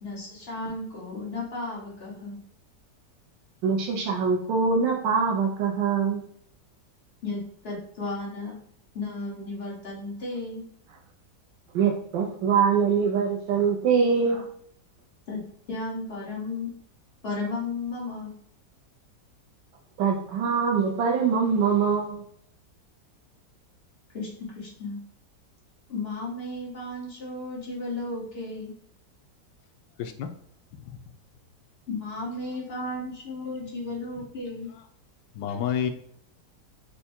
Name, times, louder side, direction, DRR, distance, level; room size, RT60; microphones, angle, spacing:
voice 1, 0.0-2.4 7.2-8.5 8.9-10.6 15.3-15.4 15.7-16.7 17.2-18.3 24.1-25.0 25.9-28.7 31.9-34.7, left 2 dB, 40° left, -4 dB, 1.3 m, -34 dB
voice 2, 3.6-6.2 11.7-14.4 20.0-22.2, right 6 dB, 85° right, 0 dB, 1.4 m, -23 dB
voice 3, 30.0-30.3 30.9-31.0 35.3-35.9, left 8 dB, 85° left, 6 dB, 1.3 m, -29 dB
4.7 x 2.2 x 4.3 m, 0.64 s
omnidirectional pair, 1.9 m